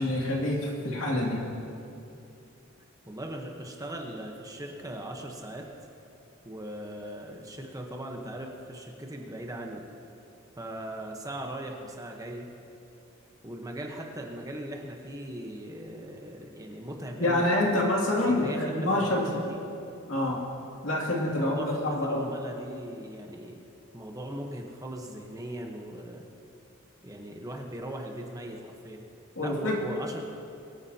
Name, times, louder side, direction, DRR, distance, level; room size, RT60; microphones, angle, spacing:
voice 1, 0.0-1.4 17.2-19.3 20.1-20.4 20.8-22.3 29.4-29.8, left 1 dB, 65° left, -2 dB, 2.5 m, -27 dB
voice 2, 3.1-5.7 6.4-9.8 10.6-12.5 13.4-17.5 18.2-19.6 21.4-23.6 23.9-26.2 27.0-29.0 29.4-30.2, right 1 dB, 15° right, 1 dB, 1.0 m, -39 dB
23.0 x 9.7 x 2.9 m, 2.7 s
head